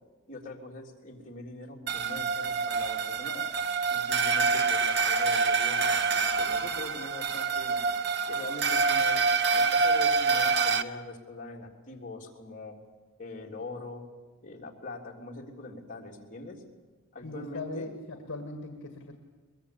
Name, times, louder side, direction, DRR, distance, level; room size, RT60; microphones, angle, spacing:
voice 1, 0.3-3.5 3.9-7.9 8.3-9.2 9.5-12.8 13.2-14.0 14.4-16.6 17.1-17.9, left 2 dB, 35° left, -1 dB, 3.4 m, -42 dB
sound 1, 1.9-10.8, right 4 dB, 50° right, 1.0 m, -26 dB
voice 2, 17.2-19.1, left 2 dB, 60° left, 5 dB, 2.0 m, -39 dB
22.5 x 21.5 x 8.5 m, 1.3 s
head